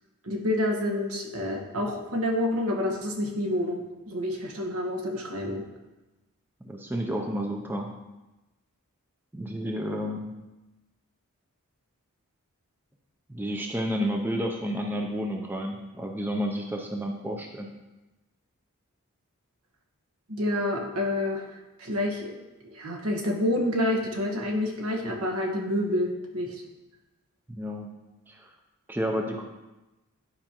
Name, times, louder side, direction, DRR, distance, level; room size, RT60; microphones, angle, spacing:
voice 1, 0.2-5.6 20.3-21.4 21.8-22.3 22.6-26.5, left 1 dB, 75° right, 1 dB, 1.2 m, -28 dB
voice 2, 6.6-7.9 9.3-10.4 13.3-17.7 27.5-27.9 28.3-28.5 28.9-29.4, equal, 10° right, 2 dB, 0.4 m, -31 dB
11.0 x 4.9 x 2.9 m, 1.1 s
head